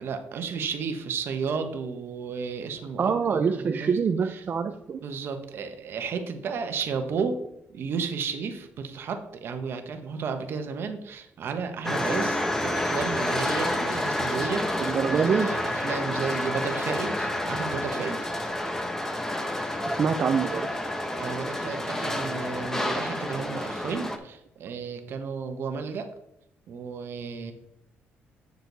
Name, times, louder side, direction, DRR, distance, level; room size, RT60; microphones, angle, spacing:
voice 1, 0.0-4.0 4.2-4.4 5.0-7.4 7.7-18.2 21.1-26.1 26.7-27.5, right 5 dB, 60° right, 7 dB, 1.2 m, -33 dB
voice 2, 3.0-5.0 14.8-15.5 20.0-20.7, right 6 dB, 45° right, 5 dB, 0.5 m, -25 dB
sound 1, 11.8-24.2, left 1 dB, 10° left, 0.9 m, -29 dB
8.2 x 6.7 x 4.0 m, 0.79 s
cardioid pair, 115°, 4 cm